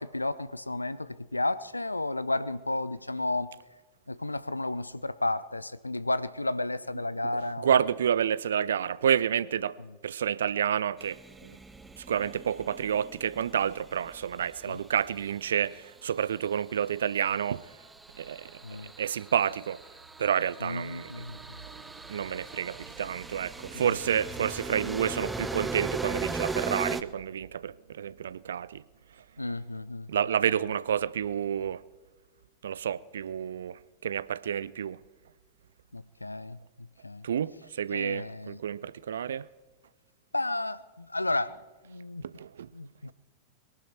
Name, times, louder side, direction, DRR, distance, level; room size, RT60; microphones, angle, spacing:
voice 1, 0.0-3.6 4.1-7.8 9.8-10.0 14.7-14.8 18.6-18.9 20.6-21.7 23.7-24.0 29.4-30.1 35.9-37.3 37.9-38.6 40.3-41.6 41.8-42.2 42.7-43.1, left 2 dB, 85° left, 0.5 m, -33 dB
voice 2, 7.6-9.8 10.0-11.6 12.0-17.7 18.2-18.5 19.0-19.8 20.2-21.1 22.1-28.8 30.1-31.8 32.6-35.0 37.2-39.5 42.4-42.7, right 9 dB, 65° right, 0.4 m, -29 dB
sound 1, 11.0-15.3 16.8-27.0, right 3 dB, 10° right, 0.7 m, -39 dB
22.5 x 11.5 x 4.4 m
figure-of-eight pair, 90°, 0 cm